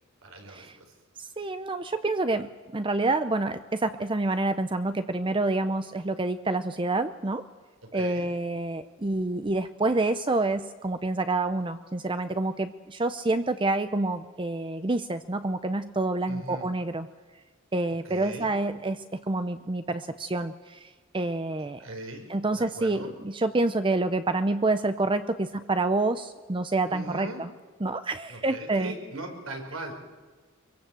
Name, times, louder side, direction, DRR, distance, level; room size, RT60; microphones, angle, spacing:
voice 1, 0.2-0.6 7.9-8.3 16.3-16.7 18.0-18.5 21.8-22.3 22.6-23.1 26.9-27.4 28.3-30.0, right 2 dB, 85° right, 3 dB, 4.9 m, -39 dB
voice 2, 1.2-7.4 7.9-17.1 17.7-21.9 22.3-27.5 27.8-28.9, right 2 dB, 25° right, 10 dB, 0.6 m, -28 dB
23.5 x 23.5 x 7.6 m, 1.4 s
head